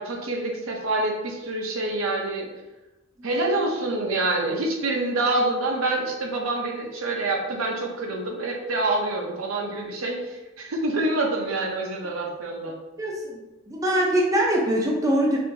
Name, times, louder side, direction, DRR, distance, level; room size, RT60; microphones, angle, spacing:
voice 1, 0.0-2.5 3.2-12.8, right 2 dB, 80° right, 1 dB, 0.7 m, -26 dB
voice 2, 13.0-15.4, right 1 dB, 15° right, -2 dB, 0.5 m, -23 dB
4.4 x 2.7 x 2.6 m, 1.1 s
head